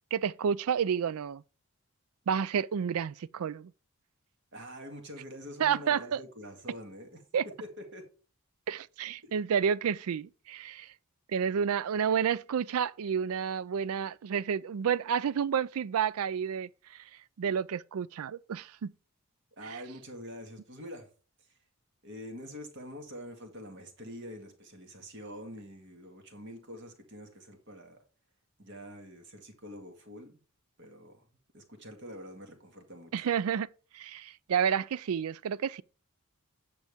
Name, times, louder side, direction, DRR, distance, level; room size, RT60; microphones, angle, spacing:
voice 1, 0.1-1.4 2.3-3.7 5.6-6.2 7.3-7.5 8.7-10.9 11.3-16.7 17.4-18.9 33.1-33.7 33.9-35.8, right 7 dB, 75° right, 0.4 m, -30 dB
voice 2, 4.5-8.1 9.2-9.3 19.6-21.1 22.0-28.0 28.6-30.4 30.8-31.3 31.5-33.3, equal, 55° right, 2.0 m, -45 dB
9.1 x 7.0 x 3.5 m
head